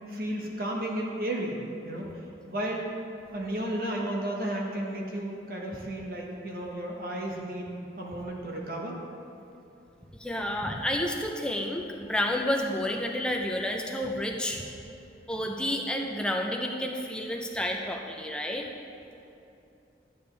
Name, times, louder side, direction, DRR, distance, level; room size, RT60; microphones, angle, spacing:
voice 1, 0.1-2.1 2.5-2.9 3.3-7.7 8.0-9.0, right 1 dB, 50° right, -1 dB, 1.1 m, -33 dB
voice 2, 10.1-14.6 15.3-18.7, left 1 dB, 5° left, 1 dB, 0.5 m, -30 dB
11.5 x 7.0 x 3.3 m, 2.7 s
head